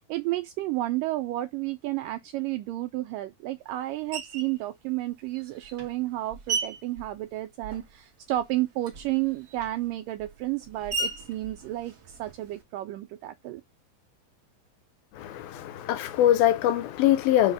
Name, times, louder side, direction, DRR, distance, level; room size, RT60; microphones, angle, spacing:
voice 1, 0.1-13.6, right 16 dB, 85° right, 1.9 m, -31 dB
Screech, 4.1-4.6 5.3-8.0 8.3-12.6, right 3 dB, 70° right, 0.9 m, -37 dB
voice 2, 15.2-17.5, left 12 dB, 80° left, 2.5 m, -23 dB
5.5 x 4.1 x 5.9 m
omnidirectional pair, 4.4 m